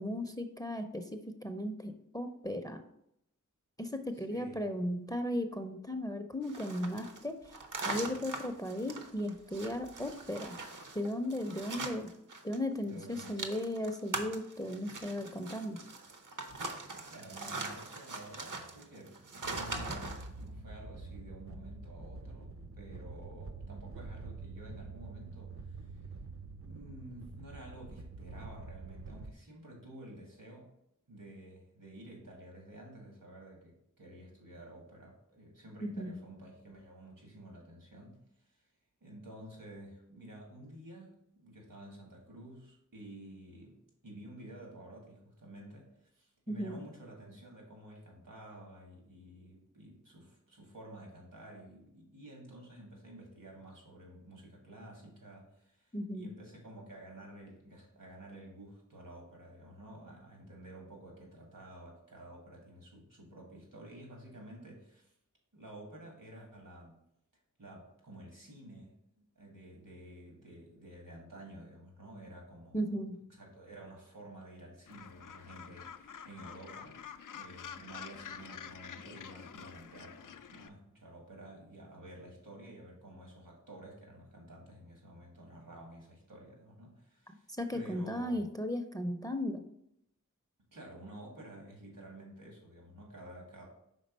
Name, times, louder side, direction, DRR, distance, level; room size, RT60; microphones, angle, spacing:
voice 1, 0.0-2.8 3.8-7.5 7.8-10.6 10.9-12.1 12.4-15.8 35.8-36.1 46.5-46.8 55.9-56.3 72.7-73.2 87.3-89.6, left 1 dB, 10° left, 7 dB, 0.5 m, -36 dB
voice 2, 4.1-4.7 12.8-13.5 17.1-19.2 19.4-26.0 26.6-30.7 31.1-38.6 39.0-65.2 65.5-67.0 67.6-73.0 73.4-77.0 77.3-88.5 90.7-93.7, right 1 dB, 85° right, -1 dB, 2.0 m, -51 dB
sound 1, 6.4-12.6 12.8-20.3, right 3 dB, 70° right, 0.8 m, -42 dB
sound 2, 19.4-29.3, right 3 dB, 45° right, 0.5 m, -46 dB
Gull seagull, 74.9-80.7, left 7 dB, 75° left, 0.5 m, -48 dB
5.2 x 3.8 x 5.3 m, 0.77 s
wide cardioid pair, 60°, 32 cm